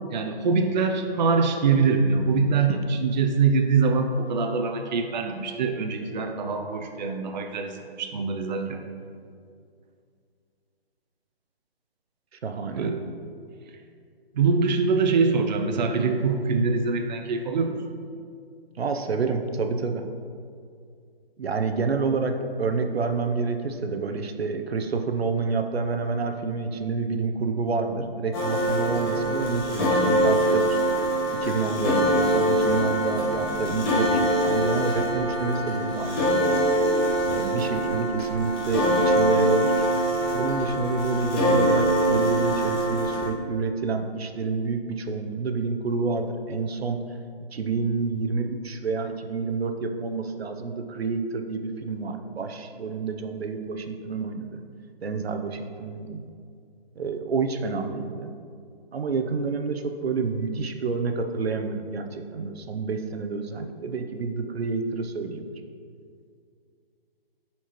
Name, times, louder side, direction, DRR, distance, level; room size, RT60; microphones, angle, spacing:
voice 1, 0.1-8.8 12.8-13.0 14.3-17.8, right 4 dB, 45° right, 5 dB, 0.5 m, -24 dB
voice 2, 12.4-12.9 18.8-20.0 21.4-22.3 22.6-30.8 31.3-36.3 37.3-39.7 40.3-47.0 47.5-54.6 55.0-56.2 57.0-58.3 58.9-65.4, right 4 dB, 85° right, 6 dB, 0.7 m, -28 dB
sound 1, 28.3-43.3, right 1 dB, 25° left, 1.4 m, -24 dB
10.0 x 4.4 x 3.1 m, 2.3 s
hypercardioid pair, 155°, 30 cm